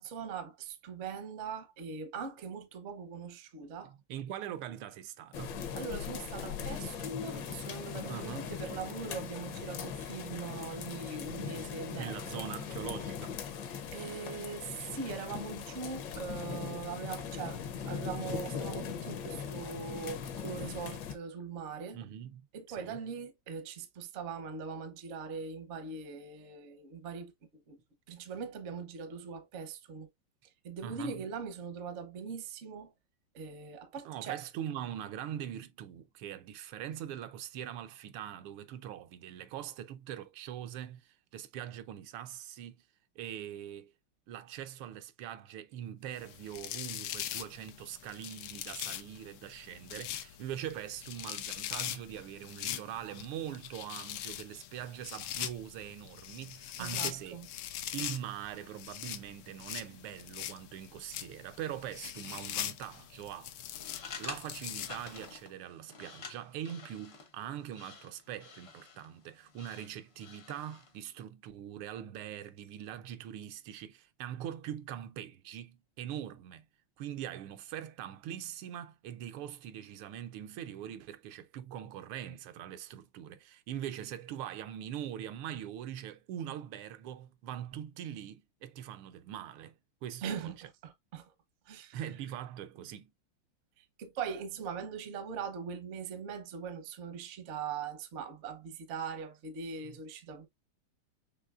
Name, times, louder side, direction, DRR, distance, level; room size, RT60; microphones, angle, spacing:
voice 1, 0.0-3.9 5.7-12.5 13.9-22.0 22.5-27.8 28.1-30.1 30.6-32.9 33.3-34.4 56.8-57.5 90.2-91.3 91.7-92.0 93.8-100.5, right 6 dB, 55° right, 0.8 m, -41 dB
voice 2, 3.8-5.6 8.1-8.5 12.0-13.4 21.9-23.0 30.8-31.2 34.0-42.8 43.1-43.9 44.3-57.4 57.9-63.5 64.2-76.7 77.0-90.7 91.9-93.1 99.8-100.0, right 10 dB, 85° right, 1.5 m, -42 dB
sound 1, 5.3-21.2, left 7 dB, 65° left, 1.3 m, -40 dB
sound 2, 46.2-65.4, left 12 dB, 90° left, 1.5 m, -42 dB
sound 3, 63.6-71.0, left 5 dB, 50° left, 0.7 m, -49 dB
6.2 x 3.1 x 2.4 m
omnidirectional pair, 2.4 m